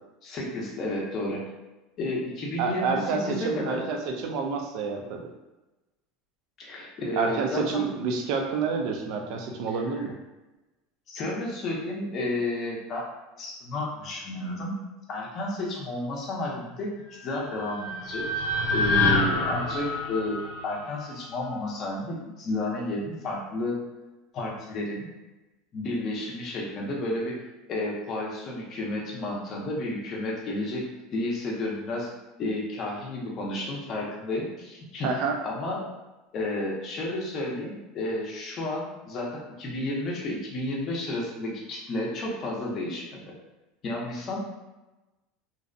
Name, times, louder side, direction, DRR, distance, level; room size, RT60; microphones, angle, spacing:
voice 1, 0.2-1.4 2.0-3.8 6.6-7.9 9.9-10.0 11.1-13.1 13.4-14.7 15.1-18.4 18.7-23.8 24.3-25.1 25.7-27.3 27.7-32.1 32.4-35.1 35.4-35.9 36.3-43.2 43.8-44.4, left 1 dB, 30° left, -3 dB, 0.5 m, -31 dB
voice 2, 2.6-5.3 7.1-10.1 35.0-35.4, right 4 dB, 55° right, 2 dB, 0.4 m, -28 dB
sound 1, 17.2-21.5, left 2 dB, 75° left, 0.6 m, -27 dB
2.5 x 2.0 x 2.5 m, 1.1 s
supercardioid pair, 160°, 0 cm